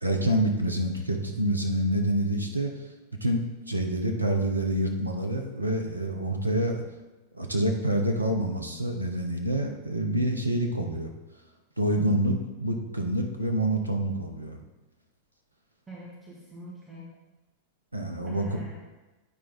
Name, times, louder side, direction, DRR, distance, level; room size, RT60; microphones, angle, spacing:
voice 1, 0.0-2.7 3.2-6.8 7.3-11.1 11.8-14.6 17.9-18.4, right 1 dB, 85° right, 3 dB, 0.8 m, -27 dB
voice 2, 15.9-17.0 18.3-18.8, equal, 15° right, -5 dB, 1.7 m, -44 dB
9.0 x 4.6 x 4.0 m, 1.1 s
figure-of-eight pair, 90°, 0 cm